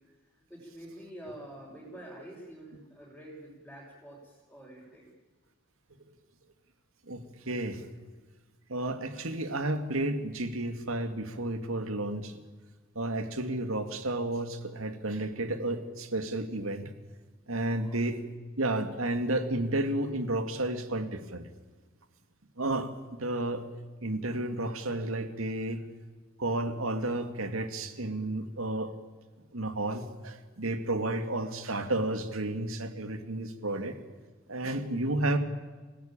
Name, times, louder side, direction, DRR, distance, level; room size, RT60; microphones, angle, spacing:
voice 1, 0.5-5.1 17.7-18.1 30.6-30.9, right 1 dB, ahead, -8 dB, 5.7 m, -47 dB
voice 2, 7.1-7.8 8.7-12.4 13.0-16.9 17.5-18.2 18.6-21.4 22.6-23.6 24.0-25.8 26.4-28.9 29.5-34.0 34.5-35.4, right 2 dB, 85° right, 8 dB, 2.3 m, -32 dB
29.0 x 16.5 x 8.9 m, 1.3 s
head